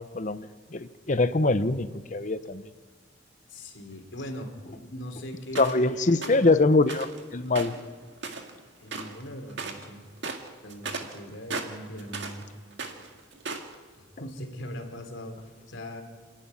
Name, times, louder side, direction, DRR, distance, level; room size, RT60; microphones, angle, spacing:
voice 1, 0.0-2.6 4.7-4.8 5.6-7.7 14.2-14.3, left 2 dB, 40° left, 12 dB, 0.8 m, -24 dB
voice 2, 3.5-5.8 6.0-6.6 8.8-10.0 10.6-12.5 14.0-16.0, equal, 80° left, 4 dB, 3.2 m, -40 dB
sound 1, 5.5-5.8 6.2-6.4 6.9-7.2 7.5-8.6 8.9-9.2 9.5-9.9 10.2-12.4 12.7-13.7, right 4 dB, 65° right, 2.0 m, -36 dB
27.5 x 11.0 x 9.6 m, 1.4 s
head